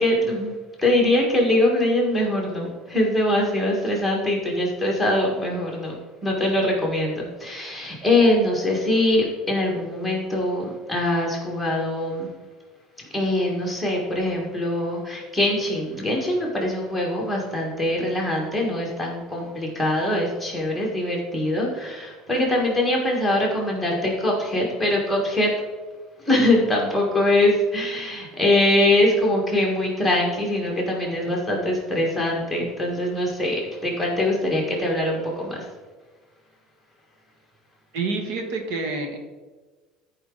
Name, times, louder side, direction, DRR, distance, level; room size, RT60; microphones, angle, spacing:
voice 1, 0.0-5.9 6.2-12.3 13.0-25.5 26.2-35.7, left 1 dB, ahead, -2 dB, 1.6 m, -23 dB
voice 2, 37.9-39.2, right 3 dB, 60° right, 4 dB, 1.3 m, -28 dB
14.0 x 4.9 x 3.9 m, 1.3 s
cardioid pair, 180°, 0 cm